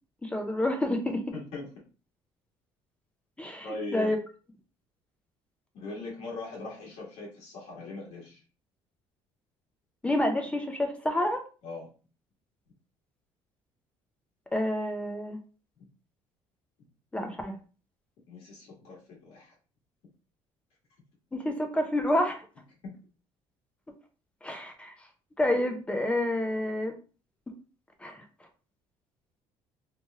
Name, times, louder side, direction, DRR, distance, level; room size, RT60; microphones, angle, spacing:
voice 1, 0.2-1.2 3.4-3.7 3.9-4.2 10.0-11.4 14.5-15.4 17.1-17.6 21.3-22.5 24.4-24.9 25.4-26.9 28.0-28.2, left 1 dB, 10° left, 4 dB, 0.4 m, -28 dB
voice 2, 1.3-1.7 3.6-4.2 5.7-8.4 11.6-11.9 18.3-19.5, left 3 dB, 70° left, -3 dB, 1.5 m, -40 dB
3.0 x 2.9 x 2.2 m, 0.36 s
cardioid pair, 145°, 10 cm